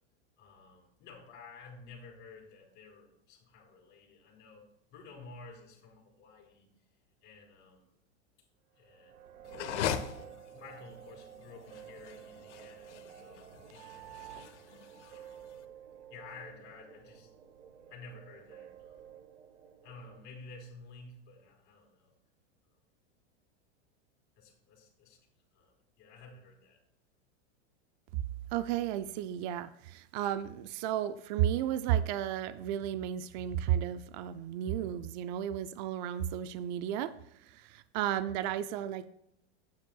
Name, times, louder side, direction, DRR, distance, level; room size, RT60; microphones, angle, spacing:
voice 1, 0.4-6.7 7.2-7.9 8.8-9.2 9.9-14.4 15.0-15.5 16.1-17.3 17.9-19.2 19.8-22.1 22.6-22.8 24.4-25.3 25.5-26.8, left 3 dB, 30° left, -1 dB, 3.8 m, -53 dB
sound 1, 8.8-20.2, right 9 dB, 85° right, 1.2 m, -51 dB
sound 2, 9.5-15.6, left 10 dB, 80° left, 1.0 m, -40 dB
voice 2, 28.5-39.1, right 11 dB, 40° right, 12 dB, 0.4 m, -33 dB
12.0 x 9.4 x 2.3 m, 0.75 s
supercardioid pair, 155°, 34 cm